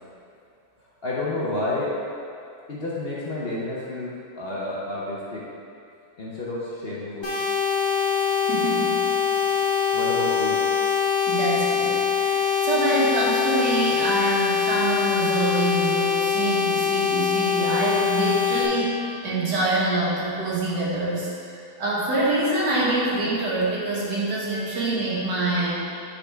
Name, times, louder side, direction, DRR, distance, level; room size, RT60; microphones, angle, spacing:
voice 1, 1.0-2.0 2.7-5.5 6.2-7.3 9.9-10.6, left 2 dB, 45° left, -7 dB, 0.8 m, -30 dB
sound 1, 7.2-18.6, left 7 dB, 15° left, 1.2 m, -23 dB
voice 2, 8.5-9.0 11.3-21.3 21.8-25.9, right 2 dB, 80° right, -6 dB, 2.0 m, -25 dB
8.8 x 4.2 x 3.4 m, 2.6 s
omnidirectional pair, 1.8 m